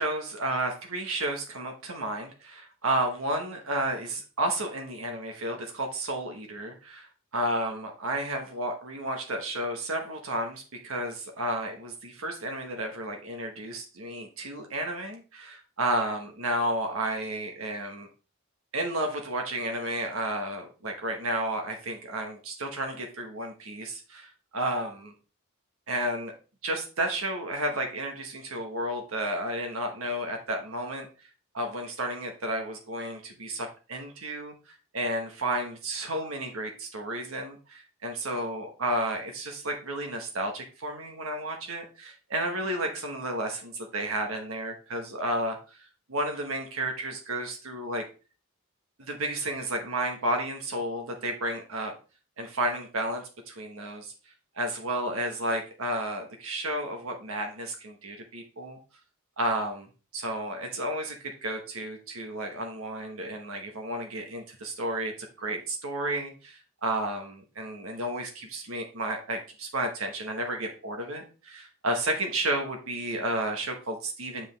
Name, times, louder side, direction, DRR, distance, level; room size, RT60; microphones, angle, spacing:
voice 1, 0.0-7.1 7.3-18.1 18.7-25.1 25.9-26.3 26.6-31.3 31.5-48.0 49.0-51.9 52.4-54.1 54.5-58.8 59.4-74.5, right 1 dB, 85° right, 3 dB, 1.3 m, -32 dB
7.4 x 5.2 x 3.3 m, 0.34 s
head